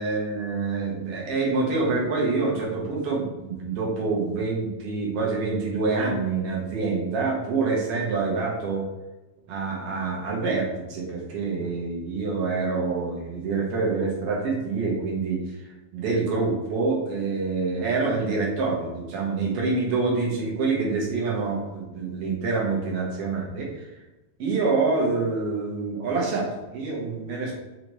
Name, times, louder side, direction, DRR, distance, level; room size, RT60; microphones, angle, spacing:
voice 1, 0.0-8.9 9.5-15.4 15.9-23.9 24.4-27.5, right 4 dB, 60° right, -2 dB, 1.9 m, -26 dB
5.2 x 3.3 x 3.1 m, 1.0 s
omnidirectional pair, 3.4 m